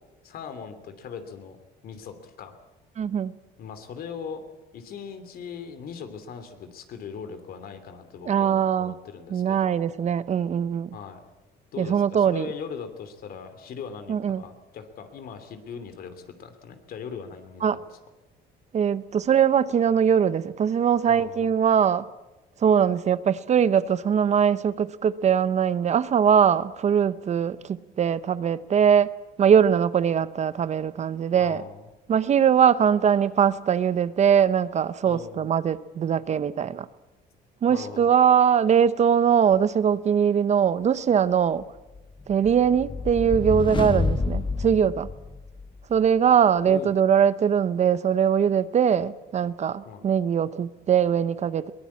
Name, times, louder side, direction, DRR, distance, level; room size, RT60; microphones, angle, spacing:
voice 1, 0.2-1.6 1.8-2.6 3.6-4.4 4.7-9.9 10.9-11.2 11.7-17.8 21.1-21.5 31.4-31.8 35.0-35.5 37.7-38.1 46.7-46.9 49.8-50.0, left 6 dB, 60° left, 2.8 m, -39 dB
voice 2, 3.0-3.3 8.2-8.9 9.3-11.0 11.8-12.5 14.1-14.4 17.6-17.8 18.7-22.1 22.6-29.1 29.4-31.6 32.1-36.9 37.6-41.6 42.3-45.1 45.9-51.7, right 8 dB, 40° right, 0.8 m, -21 dB
sound 1, 42.0-45.8, left 4 dB, 30° left, 1.2 m, -29 dB
22.5 x 19.0 x 8.5 m
cardioid pair, 110°, 17 cm